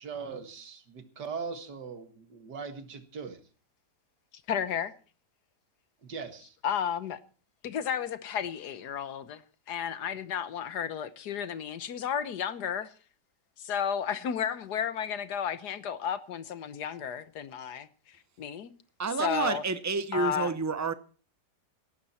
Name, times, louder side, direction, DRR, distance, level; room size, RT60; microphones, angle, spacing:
voice 1, 0.0-3.4 6.0-6.5, right 5 dB, 85° right, 2.3 m, -40 dB
voice 2, 4.5-4.9 6.6-7.2 7.6-9.4 9.7-12.9 13.6-18.7 19.2-19.6 20.1-20.5, left 8 dB, 75° left, 1.6 m, -33 dB
voice 3, 19.0-20.9, right 4 dB, 15° right, 0.6 m, -29 dB
17.5 x 12.0 x 4.3 m
omnidirectional pair, 1.8 m